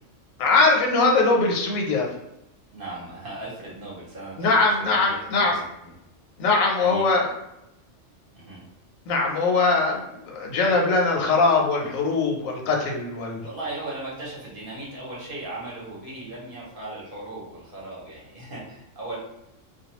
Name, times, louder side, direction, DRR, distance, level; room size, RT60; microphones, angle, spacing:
voice 1, 0.4-2.1 4.4-5.5 6.4-7.3 9.1-13.4, left 3 dB, 90° left, 0 dB, 1.0 m, -21 dB
voice 2, 2.7-4.5 4.8-5.9 6.7-7.1 8.3-8.6 13.4-19.2, right 2 dB, 50° right, -6 dB, 0.9 m, -37 dB
2.2 x 2.2 x 2.9 m, 0.87 s
omnidirectional pair, 1.3 m